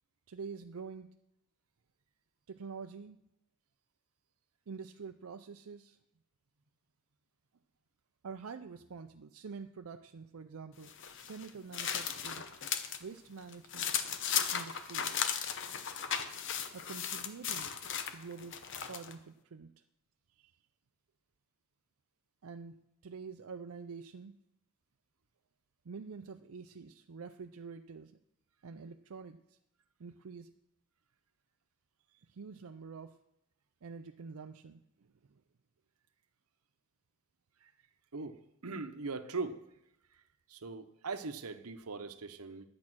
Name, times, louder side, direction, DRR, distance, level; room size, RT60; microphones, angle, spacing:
voice 1, 0.3-1.1 2.5-3.2 4.7-6.0 8.2-12.5 13.0-13.9 14.5-15.2 16.7-17.7 18.1-18.6 18.9-19.7 22.4-22.8 23.0-24.3 25.8-28.1 28.6-29.6 30.0-30.5 32.3-33.2 33.8-35.4, right 5 dB, 75° right, 6 dB, 0.5 m, -47 dB
sound 1, 10.8-13.0 13.4-19.1, left 8 dB, 55° left, 0.9 m, -36 dB
voice 2, 38.1-39.7 40.1-40.2 40.5-42.7, right 4 dB, 90° right, 9 dB, 0.9 m, -40 dB
11.0 x 8.6 x 6.1 m, 0.82 s
head